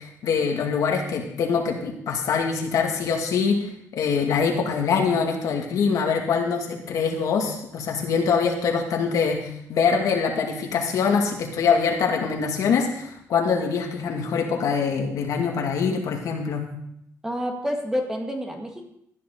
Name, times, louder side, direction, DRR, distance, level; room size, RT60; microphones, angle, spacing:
voice 1, 0.0-16.6, left 5 dB, 70° left, 2 dB, 2.2 m, -24 dB
voice 2, 17.2-18.8, equal, 10° right, 2 dB, 1.9 m, -28 dB
15.5 x 10.5 x 4.0 m, 0.73 s
cardioid pair, 135°, 6 cm